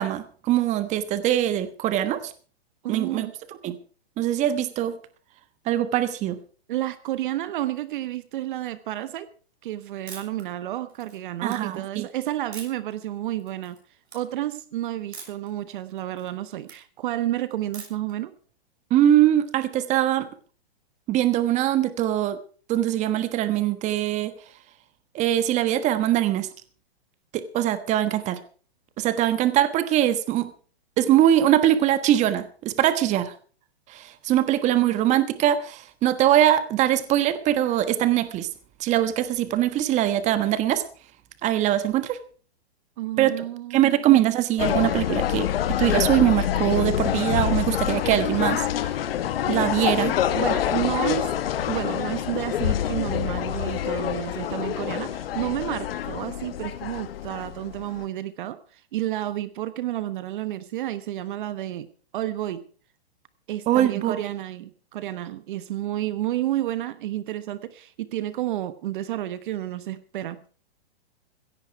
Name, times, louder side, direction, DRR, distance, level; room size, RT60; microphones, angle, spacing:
voice 1, 0.0-2.3 2.9-3.3 3.6-3.8 4.2-5.0 5.7-6.4 11.4-12.1 18.9-20.3 21.1-22.4 22.7-24.3 25.1-26.5 27.3-28.4 29.0-30.5 31.0-33.3 33.9-38.5 38.8-40.8 41.4-42.2 43.2-45.5 45.8-48.9 49.5-50.2 63.7-64.2, right 12 dB, 20° right, 12 dB, 1.3 m, -22 dB
voice 2, 2.8-3.3 6.7-9.3 9.6-13.8 14.1-18.3 43.0-44.0 50.3-51.3 51.7-61.9 62.1-62.6 63.5-70.4, right 14 dB, 50° right, 14 dB, 1.1 m, -30 dB
sound 1, 10.1-10.4 10.9-11.6 12.5-12.9 13.4-13.8 14.0-14.2 15.1-15.5 15.9-16.8 17.7-18.1, right 5 dB, 85° right, 6.8 m, -42 dB
sound 2, 44.6-58.0, left 11 dB, 65° left, 1.6 m, -26 dB
16.5 x 14.0 x 4.6 m, 0.41 s
hypercardioid pair, 150°, 32 cm